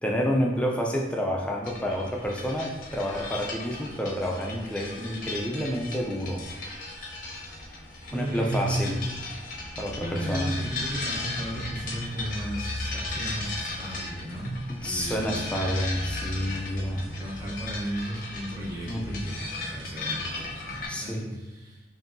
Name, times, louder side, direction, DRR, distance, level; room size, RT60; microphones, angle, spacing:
voice 1, 0.0-6.4 8.1-9.0 9.8-10.5 14.8-17.1 18.9-19.2 20.9-21.4, equal, 5° left, 0 dB, 0.4 m, -29 dB
sound 1, 1.6-20.9, left 2 dB, 45° left, 0.6 m, -36 dB
voice 2, 8.1-8.9 10.0-15.7 16.9-21.8, right 1 dB, 15° right, -7 dB, 0.8 m, -35 dB
5.3 x 2.7 x 2.6 m, 1.1 s
head